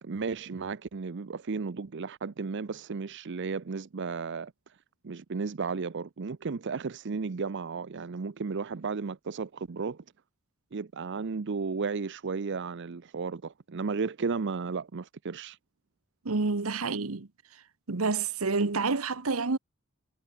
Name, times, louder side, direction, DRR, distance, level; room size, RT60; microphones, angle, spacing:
voice 1, 0.0-4.5 5.0-10.0 10.7-15.6, right 4 dB, 55° right, 0.6 m, -34 dB
voice 2, 16.2-17.3 17.9-19.6, right 4 dB, 80° right, 1.2 m, -28 dB
head